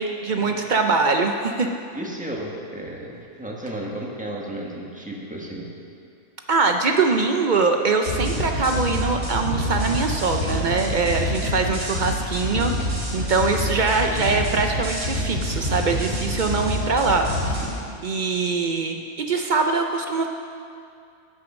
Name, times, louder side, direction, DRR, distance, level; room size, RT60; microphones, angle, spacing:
voice 1, 0.0-1.7 6.5-12.7 13.1-17.8 18.0-20.3, right 4 dB, 60° right, 4 dB, 0.5 m, -23 dB
voice 2, 1.9-5.7, right 1 dB, 5° right, -2 dB, 1.3 m, -33 dB
sound 1, 8.1-17.6, equal, 80° right, 3.1 m, -27 dB
10.5 x 6.3 x 7.2 m, 2.4 s
omnidirectional pair, 1.5 m